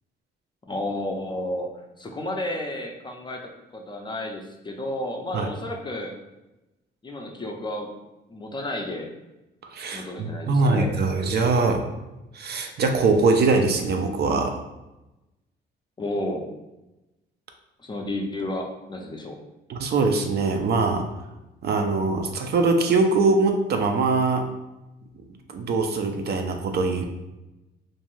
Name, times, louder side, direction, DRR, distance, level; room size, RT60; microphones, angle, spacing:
voice 1, 0.7-1.7 2.0-6.1 7.0-7.9 8.3-9.1 9.9-10.9 16.0-16.5 17.8-19.4, left 1 dB, 25° left, 2 dB, 0.4 m, -32 dB
voice 2, 9.6-11.9 12.3-14.6 19.7-21.1 21.6-24.5 25.5-27.1, right 3 dB, 55° right, 5 dB, 0.4 m, -22 dB
2.5 x 2.2 x 3.0 m, 1.0 s
cardioid pair, 90°, 20 cm